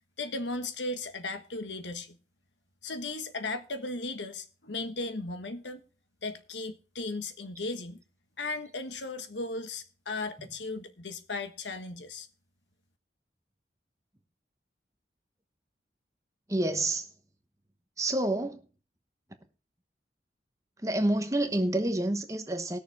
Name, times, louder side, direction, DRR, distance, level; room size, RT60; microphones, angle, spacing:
voice 1, 0.2-2.2 2.8-5.8 6.2-8.0 8.4-12.3, left 2 dB, 85° left, 1.4 m, -36 dB
voice 2, 16.5-17.1 18.0-18.6 20.8-22.8, right 1 dB, 20° right, 1.0 m, -28 dB
20.0 x 6.8 x 3.5 m
head